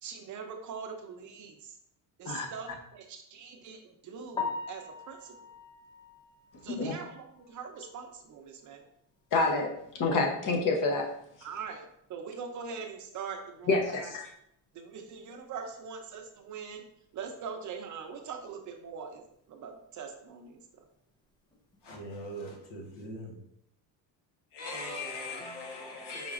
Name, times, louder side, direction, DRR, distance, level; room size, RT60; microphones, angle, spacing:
voice 1, 0.0-1.8 2.2-5.4 6.6-8.8 11.4-14.1 14.7-16.8 17.1-19.2 19.5-20.6, right 6 dB, 45° right, 0.7 m, -42 dB
Piano, 4.3-8.3 8.7-8.8 9.3-9.4 9.7-9.8 12.9-13.0 21.5-21.8, left 5 dB, 10° left, 0.3 m, -41 dB
voice 2, 9.3-9.7 10.0-11.1 13.7-14.2, left 3 dB, 50° left, 1.0 m, -27 dB
voice 3, 21.8-23.4 24.5-26.3, left 1 dB, 70° left, 1.3 m, -40 dB
5.0 x 3.7 x 2.5 m
cardioid pair, 120°, 42 cm